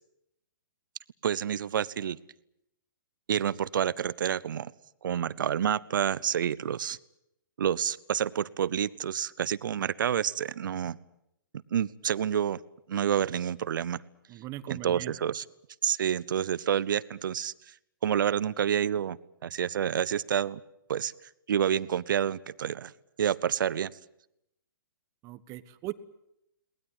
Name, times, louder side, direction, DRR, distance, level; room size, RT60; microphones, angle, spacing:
voice 1, 1.2-2.2 3.3-4.7 5.0-7.0 7.6-11.0 11.7-12.6 12.9-14.0 14.7-15.4 15.8-17.5 18.0-20.6 20.9-21.1 21.5-22.9 23.2-23.9, right 9 dB, 65° right, 20 dB, 0.8 m, -28 dB
voice 2, 14.3-15.1 25.2-25.9, right 16 dB, 30° right, 14 dB, 1.2 m, -39 dB
22.0 x 19.5 x 9.2 m, 0.82 s
hypercardioid pair, 125°, 12 cm